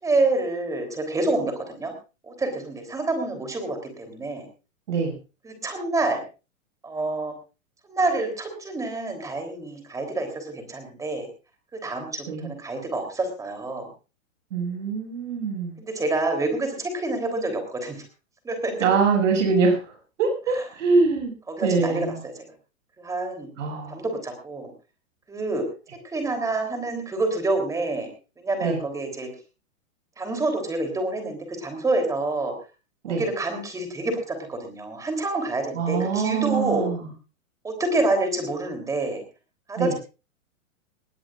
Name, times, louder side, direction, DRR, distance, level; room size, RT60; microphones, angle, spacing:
voice 1, 0.0-1.9 2.2-4.5 5.4-6.2 6.8-7.3 7.9-11.3 11.7-13.9 15.8-18.0 18.4-18.7 20.5-20.6 21.5-22.3 23.0-23.5 23.9-24.7 25.3-25.6 26.0-28.1 28.4-29.3 30.2-32.5 33.1-36.9 37.6-39.2 39.7-39.9, right 2 dB, 10° right, 5 dB, 3.5 m, -27 dB
voice 2, 14.5-15.8 18.8-19.9 20.2-21.3 21.6-22.2 23.6-23.9 28.6-28.8 33.0-33.2 35.8-37.1 39.8-39.9, right 4 dB, 65° right, 2 dB, 6.9 m, -23 dB
19.5 x 17.5 x 2.5 m, 0.32 s
hypercardioid pair, 155°, 41 cm